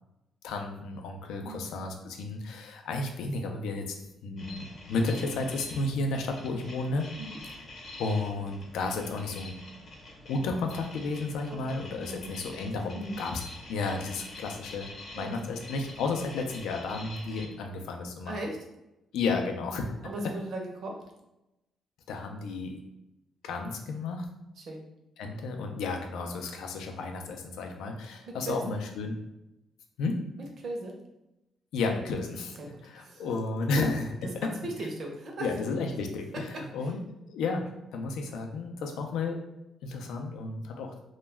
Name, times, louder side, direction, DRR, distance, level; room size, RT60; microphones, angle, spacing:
voice 1, 0.4-4.0 4.2-7.1 8.0-9.6 10.2-13.4 13.7-14.9 15.1-18.4 19.1-19.9 20.2-20.3 22.1-22.8 23.4-24.3 25.2-29.2 30.0-30.3 31.7-34.1 34.4-34.5 35.4-37.0 37.3-39.4 39.8-40.9, left 3 dB, 90° left, 4 dB, 0.4 m, -32 dB
sound 1, 4.4-17.5, left 2 dB, 45° left, 0.7 m, -46 dB
voice 2, 12.1-12.4 12.9-13.2 15.1-15.4 18.3-18.6 20.0-21.0 24.6-24.9 28.3-28.8 30.4-30.9 32.6-33.3 34.2-35.5 36.8-36.9, right 1 dB, 50° right, 1 dB, 0.5 m, -37 dB
2.2 x 2.1 x 3.2 m, 0.92 s
cardioid pair, 150°, 0 cm